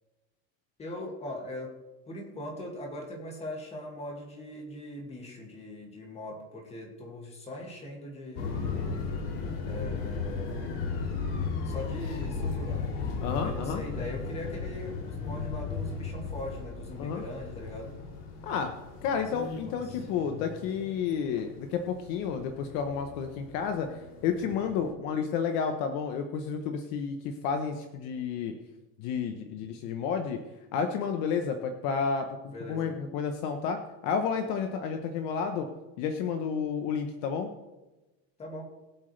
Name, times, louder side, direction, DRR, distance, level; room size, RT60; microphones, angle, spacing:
voice 1, 0.8-1.8 2.1-8.6 9.7-10.7 11.6-13.0 13.4-18.0 19.1-19.3 19.6-20.0 32.5-33.0 38.4-38.6, left 1 dB, 15° left, 0 dB, 2.3 m, -40 dB
sound 1, 8.4-24.9, left 5 dB, 75° left, 3.0 m, -36 dB
voice 2, 13.2-13.8 17.0-17.2 18.4-18.7 19.0-28.5 29.0-30.4 30.7-33.8 34.0-35.7 36.0-37.5, left 6 dB, 50° left, 6 dB, 1.0 m, -31 dB
22.0 x 7.8 x 3.3 m, 1.1 s
cardioid pair, 170°, 37 cm